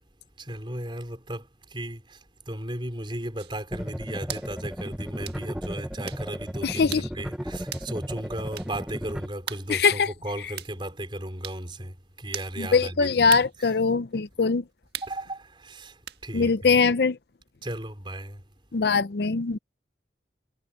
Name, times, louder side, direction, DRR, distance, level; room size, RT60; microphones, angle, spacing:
voice 1, 0.4-13.4 15.0-16.7 17.6-18.5, right 1 dB, 25° right, 5.0 m, -35 dB
sound 1, 3.4-3.6 4.3-4.5 5.3-5.4 6.1-6.3 6.9-7.1 7.7-7.9 8.6-8.7 9.5-9.7 10.6-10.7 11.4-11.6 12.3-12.5 13.3-13.5 14.9-15.2 16.1-16.2, right 10 dB, 65° right, 1.6 m, -37 dB
sound 2, 3.7-9.3, equal, 5° right, 0.8 m, -35 dB
voice 2, 6.6-7.0 9.7-10.1 12.6-14.6 16.3-17.2 18.7-19.6, left 5 dB, 65° left, 0.5 m, -22 dB
head